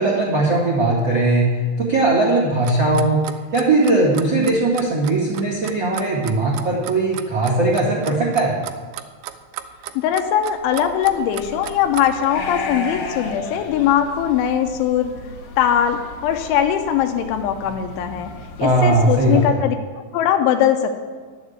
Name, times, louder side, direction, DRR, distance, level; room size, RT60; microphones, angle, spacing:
voice 1, 0.0-1.5 1.8-3.2 3.5-8.5 13.8-13.9 18.6-19.4, right 2 dB, 45° right, -5 dB, 1.5 m, -19 dB
Clock, 2.6-12.3, right 13 dB, 80° right, 2.8 m, -34 dB
voice 2, 10.0-15.1 15.6-18.3 18.6-21.0, left 9 dB, 90° left, 5 dB, 3.2 m, -20 dB
sound 1, 10.7-19.5, left 2 dB, 65° left, 2.3 m, -34 dB
11.0 x 7.2 x 8.0 m, 1.5 s
omnidirectional pair, 5.3 m